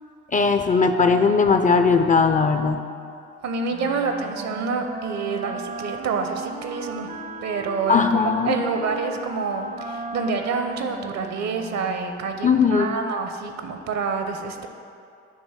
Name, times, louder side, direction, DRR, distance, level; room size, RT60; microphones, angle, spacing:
voice 1, 0.3-2.8 7.9-8.5 12.4-12.9, left 5 dB, 25° left, 7 dB, 0.5 m, -18 dB
voice 2, 3.4-7.1 7.4-14.7, right 4 dB, 60° right, 6 dB, 0.8 m, -27 dB
Wind instrument woodwind instrument, 3.7-12.4, right 4 dB, 25° right, 0.5 m, -36 dB
9.1 x 3.1 x 5.7 m, 2.5 s
hypercardioid pair, 60°, 31 cm